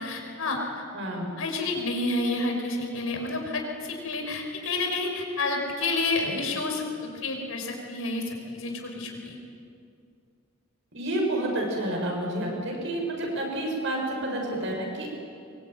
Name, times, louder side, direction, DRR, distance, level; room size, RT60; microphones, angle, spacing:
voice 1, 0.0-0.8 1.4-9.4, left 2 dB, 80° left, 2 dB, 5.9 m, -30 dB
voice 2, 0.9-1.3 10.9-15.1, right 1 dB, 60° right, 0 dB, 7.4 m, -29 dB
24.5 x 24.0 x 9.5 m, 2.4 s
head